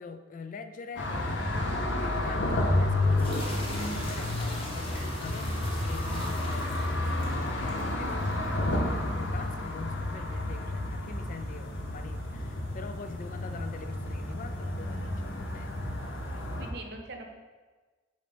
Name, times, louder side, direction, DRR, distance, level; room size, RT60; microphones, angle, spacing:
voice 1, 0.0-6.7 7.3-15.8, left 4 dB, 45° left, 9 dB, 0.3 m, -44 dB
sound 1, 1.0-16.7, left 1 dB, 70° left, 0.7 m, -31 dB
sound 2, 3.0-16.6, left 1 dB, 30° left, 1.1 m, -45 dB
voice 2, 16.3-17.3, right 2 dB, 60° right, 4 dB, 0.7 m, -43 dB
6.8 x 2.8 x 5.0 m, 1.4 s
head